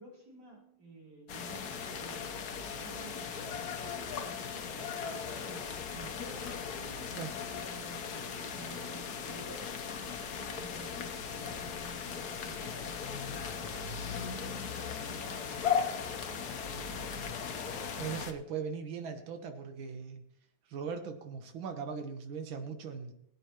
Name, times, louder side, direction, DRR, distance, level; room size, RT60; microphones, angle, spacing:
voice 1, 0.0-2.3 2.7-5.9 6.7-14.4 15.0-16.0 16.2-17.1 17.9-18.2, right 2 dB, 45° right, -3 dB, 4.2 m, -53 dB
sound 1, 1.3-18.3, left 6 dB, 55° left, 1.3 m, -38 dB
voice 2, 18.0-20.2 20.7-23.1, right 6 dB, 65° right, 6 dB, 2.0 m, -39 dB
20.5 x 9.0 x 3.0 m, 0.68 s
omnidirectional pair, 2.4 m